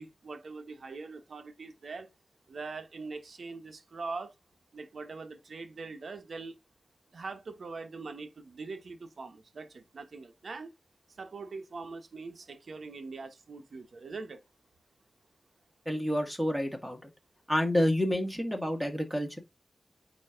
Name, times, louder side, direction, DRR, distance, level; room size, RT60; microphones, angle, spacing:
voice 1, 0.0-2.1 2.5-4.3 4.7-6.6 7.1-10.7 11.2-14.4, right 4 dB, 65° right, 1.1 m, -42 dB
voice 2, 15.9-17.1 17.5-19.4, equal, ahead, 1.9 m, -29 dB
8.8 x 3.0 x 3.8 m
wide cardioid pair, 110°, 0 cm